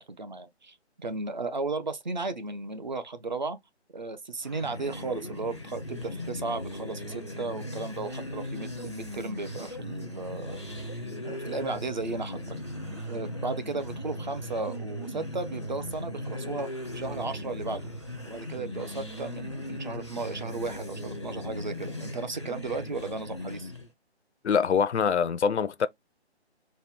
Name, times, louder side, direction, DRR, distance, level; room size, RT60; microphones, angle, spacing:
voice 1, 0.0-3.6 3.9-10.6 11.2-12.6 13.1-17.9 18.2-23.7, right 3 dB, 45° right, 0.6 m, -35 dB
sound 1, 4.4-23.9, left 1 dB, 25° left, 0.4 m, -38 dB
voice 2, 24.4-25.9, left 6 dB, 85° left, 0.5 m, -24 dB
4.2 x 2.1 x 3.5 m
figure-of-eight pair, 165°, 33 cm